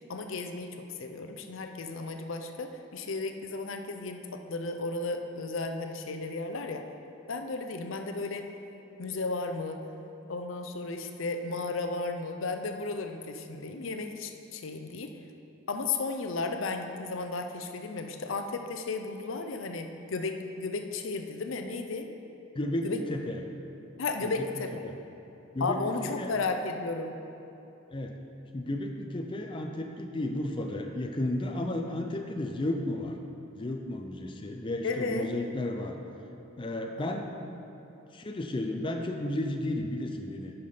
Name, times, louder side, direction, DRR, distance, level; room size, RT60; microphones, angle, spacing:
voice 1, 0.1-0.7 1.0-6.8 7.3-8.5 9.0-9.8 10.3-15.1 15.7-22.1 22.8-23.0 24.0-24.7 25.6-27.2 34.8-35.3 37.0-37.1, left 3 dB, 65° left, 6 dB, 0.6 m, -34 dB
voice 2, 22.5-23.4 24.2-24.5 24.8-24.9 25.5-26.3 27.9-28.2 28.5-33.2 33.6-36.0 36.6-37.6 38.1-40.5, left 1 dB, 25° left, 3 dB, 0.5 m, -33 dB
9.5 x 5.8 x 5.0 m, 3.0 s
head